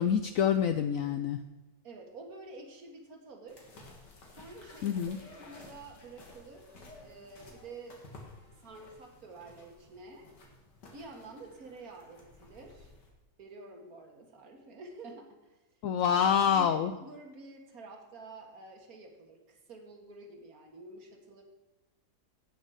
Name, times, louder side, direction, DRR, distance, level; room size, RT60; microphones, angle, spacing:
voice 1, 0.0-1.4 4.8-5.2 15.8-16.9, left 8 dB, 70° left, 9 dB, 0.8 m, -26 dB
voice 2, 1.8-3.7 4.3-8.0 8.6-10.3 10.9-12.9 13.4-15.8 16.1-21.4, right 2 dB, 60° right, 3 dB, 2.1 m, -49 dB
sound 1, 3.5-13.1, left 2 dB, 90° left, 2.6 m, -54 dB
16.5 x 6.4 x 4.8 m, 1.1 s
omnidirectional pair, 1.8 m